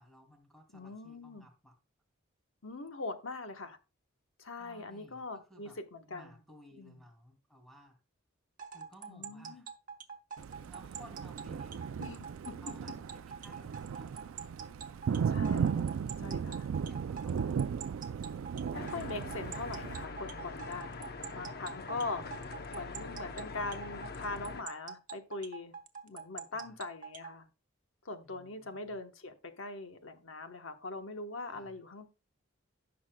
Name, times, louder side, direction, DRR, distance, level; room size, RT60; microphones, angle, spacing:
voice 1, 0.0-1.8 4.6-5.8 6.1-8.0 8.7-9.7 10.7-11.9 12.6-14.5 14.9-15.5 16.7-17.9 26.5-26.8 28.2-29.0 31.5-31.8, equal, ahead, 2.7 m, -57 dB
voice 2, 0.7-1.5 2.6-3.8 4.4-6.4 6.8-7.0 9.1-9.6 12.0-12.5 15.3-15.9 16.2-16.7 18.7-22.2 22.7-25.7 26.0-27.5 28.0-32.1, left 3 dB, 70° left, 1.1 m, -42 dB
sound 1, 8.6-27.3, right 6 dB, 40° right, 0.9 m, -45 dB
Thunder, 10.4-20.0, right 7 dB, 70° right, 0.3 m, -36 dB
sound 2, 18.7-24.6, left 3 dB, 50° left, 0.8 m, -43 dB
16.5 x 5.9 x 2.2 m
head